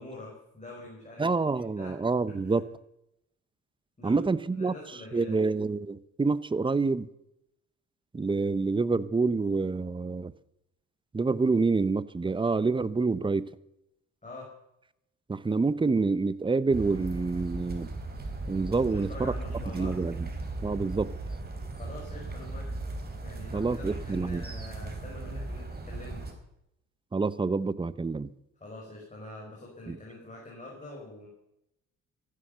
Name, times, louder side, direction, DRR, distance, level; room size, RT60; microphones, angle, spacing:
voice 1, 0.0-1.3 1.5-2.0 2.3-2.6 4.0-4.3 4.5-5.5 14.2-14.5 18.8-20.0 21.7-22.7 23.2-26.3 28.6-31.3, left 2 dB, 25° left, 5.4 m, -45 dB
voice 2, 1.2-2.7 4.0-4.7 5.1-7.1 8.1-10.3 11.1-13.5 15.3-17.9 18.5-19.3 19.7-20.3 20.6-21.1 23.5-24.4 27.1-28.3 29.9-30.0, right 4 dB, 15° right, 0.8 m, -27 dB
sound 1, 16.7-26.3, right 2 dB, 30° right, 3.6 m, -37 dB
15.5 x 11.5 x 6.7 m
cardioid pair, 90°, 30 cm